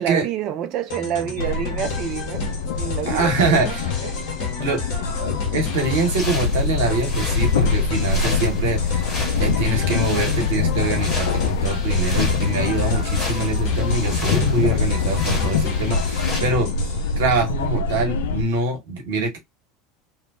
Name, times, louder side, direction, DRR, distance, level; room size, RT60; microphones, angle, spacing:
voice 1, 0.0-2.5 2.8-4.1 4.4-4.8, right 10 dB, 50° right, 0.5 m, -28 dB
sound 1, 0.9-17.2, left 4 dB, 55° left, 1.1 m, -31 dB
sound 2, 1.4-18.4, left 4 dB, 70° left, 0.3 m, -24 dB
voice 2, 3.1-4.2 4.6-4.8 5.2-9.1 9.4-16.7 17.2-19.4, right 3 dB, 70° right, 1.1 m, -24 dB
sound 3, 5.7-16.4, left 3 dB, 30° left, 1.6 m, -35 dB
2.7 x 2.1 x 2.5 m
figure-of-eight pair, 75°, 0 cm